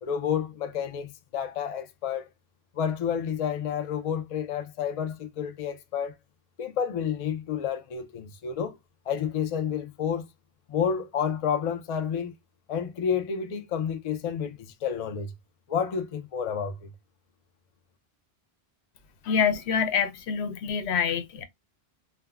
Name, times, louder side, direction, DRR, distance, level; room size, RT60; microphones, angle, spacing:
voice 1, 0.0-2.3 2.7-6.1 6.6-8.8 9.1-10.2 10.7-12.3 12.7-15.3 15.7-16.9, left 7 dB, 55° left, 0.4 m, -30 dB
voice 2, 19.2-21.4, left 7 dB, 85° left, 0.9 m, -26 dB
3.3 x 2.0 x 2.3 m
omnidirectional pair, 1.1 m